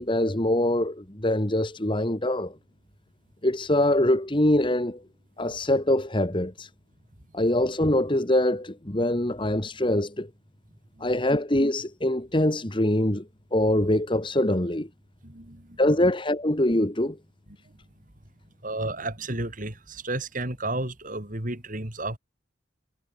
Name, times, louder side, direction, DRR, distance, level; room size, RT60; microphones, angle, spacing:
voice 1, 0.0-2.6 3.4-5.0 5.4-6.7 7.3-10.3 11.0-14.9 15.8-17.2, left 1 dB, 25° left, 1.9 m, -24 dB
voice 2, 15.2-15.8 18.6-22.2, right 2 dB, 45° right, 4.2 m, -32 dB
head